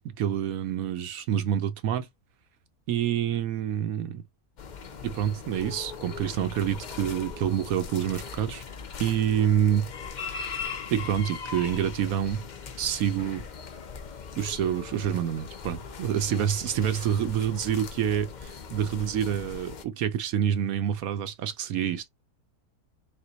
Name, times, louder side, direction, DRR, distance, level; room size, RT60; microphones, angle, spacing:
voice 1, 0.2-2.1 2.9-4.2 5.0-8.6 9.0-9.9 10.3-10.5 10.9-12.4 12.8-13.4 14.4-22.1, right 9 dB, 70° right, 1.0 m, -27 dB
sound 1, 4.6-19.8, left 5 dB, 60° left, 0.4 m, -40 dB
4.2 x 2.2 x 3.9 m
omnidirectional pair, 1.6 m